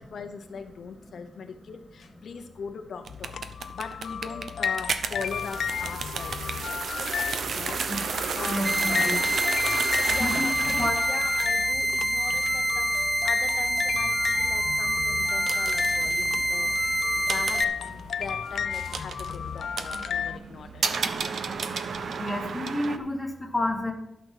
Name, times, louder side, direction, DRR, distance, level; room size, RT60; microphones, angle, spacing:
voice 1, 0.0-3.4 3.7-6.5 7.4-7.9 8.3-8.7 10.1-20.8, left 5 dB, 70° left, 6 dB, 0.8 m, -40 dB
sound 1, 3.0-23.0, right 5 dB, 65° right, 0.7 m, -34 dB
sound 2, 3.1-20.4, left 8 dB, 85° left, 0.4 m, -33 dB
voice 2, 8.5-9.2 10.2-10.5 10.8-11.0 22.2-23.9, left 1 dB, 5° left, 0 dB, 1.5 m, -29 dB
sound 3, 8.6-17.6, right 1 dB, 10° right, 0.4 m, -26 dB
12.0 x 6.1 x 6.0 m, 0.86 s
wide cardioid pair, 175°, 0 cm